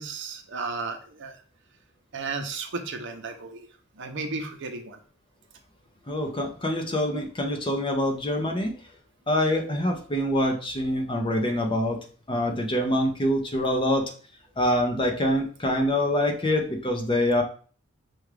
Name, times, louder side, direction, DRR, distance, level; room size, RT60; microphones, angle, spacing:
voice 1, 0.0-1.4 2.1-3.7 4.0-5.0, right 4 dB, 60° right, 5 dB, 0.7 m, -34 dB
voice 2, 6.1-8.7 9.3-12.0 12.3-14.1 14.6-17.4, left 1 dB, 25° left, 3 dB, 0.7 m, -25 dB
6.0 x 2.4 x 3.3 m, 0.41 s
head